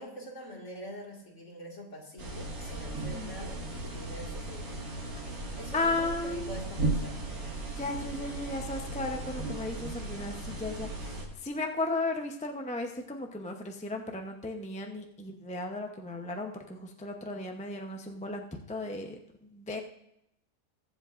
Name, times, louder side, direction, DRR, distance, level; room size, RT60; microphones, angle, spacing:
voice 1, 0.0-4.8 5.5-7.2, equal, 55° left, -1 dB, 2.6 m, -44 dB
sound 1, 2.2-11.3, right 2 dB, 85° right, 2.6 m, -36 dB
voice 2, 5.7-6.5 7.8-19.8, left 2 dB, 5° left, 3 dB, 0.6 m, -35 dB
21.5 x 8.0 x 2.6 m, 0.81 s
omnidirectional pair, 1.5 m